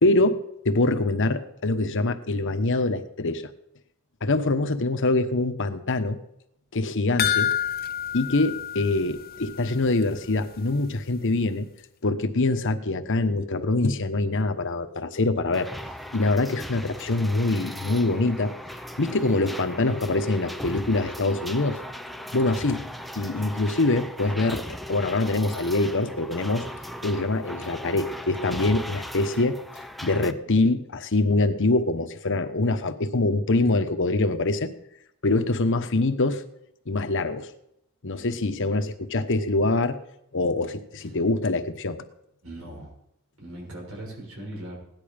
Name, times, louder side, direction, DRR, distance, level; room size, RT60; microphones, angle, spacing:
voice 1, 0.0-3.5 4.2-6.2 6.7-7.5 8.1-11.7 12.0-15.7 16.1-18.5 19.0-21.8 22.3-22.8 23.1-26.7 27.0-29.6 30.0-34.7 35.2-36.4 36.9-37.5 38.0-40.0 40.3-42.0, left 2 dB, 60° left, 9 dB, 1.1 m, -24 dB
sound 1, 7.2-9.7 10.0-10.1 10.6-10.7, left 10 dB, 45° left, 0.5 m, -28 dB
sound 2, 15.5-30.3, equal, ahead, 0.6 m, -38 dB
voice 2, 42.4-42.9 43.4-44.8, right 1 dB, 80° right, -1 dB, 6.6 m, -39 dB
17.0 x 11.0 x 5.1 m, 0.80 s
head